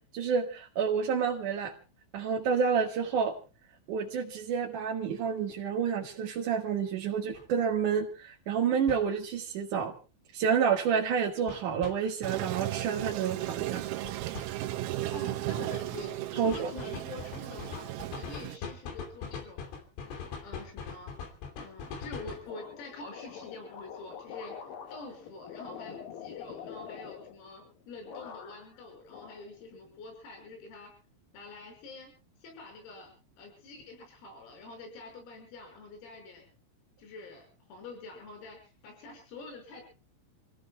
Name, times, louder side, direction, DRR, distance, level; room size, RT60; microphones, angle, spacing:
voice 1, 0.1-1.7 2.1-3.3 3.9-9.9 10.3-13.8 16.4-16.7, right 6 dB, 60° right, 0 dB, 2.3 m, -29 dB
sound 1, 7.3-7.5 8.9-9.1 11.5-11.9 14.1-14.5 16.5-22.5, left 6 dB, 70° left, 5.3 m, -41 dB
Toilet flush, 12.2-18.6, right 15 dB, 90° right, 3.7 m, -35 dB
voice 2, 15.1-17.9 18.2-19.7 20.4-21.2 21.6-30.9 31.3-32.1 32.4-33.1 33.4-36.5 37.0-39.8, left 3 dB, 85° left, 4 dB, 8.6 m, -46 dB
sound 2, 22.5-27.7 28.0-28.8 29.1-30.0, left 7 dB, 55° left, 2.8 m, -45 dB
30.0 x 16.5 x 2.3 m, 0.35 s
omnidirectional pair, 5.9 m